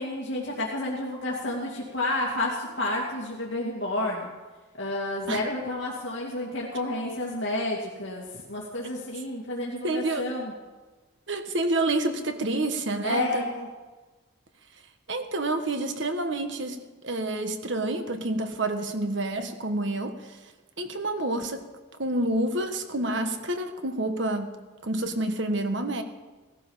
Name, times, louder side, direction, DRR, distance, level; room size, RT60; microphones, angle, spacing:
voice 1, 0.0-4.3 4.7-10.5 13.0-13.7, left 1 dB, 65° left, -4 dB, 2.6 m, -30 dB
voice 2, 9.8-10.3 11.3-13.4 15.1-20.4 20.8-21.6 22.0-24.6 24.8-26.0, right 2 dB, 65° right, 7 dB, 1.5 m, -28 dB
17.5 x 14.0 x 5.7 m, 1.3 s
head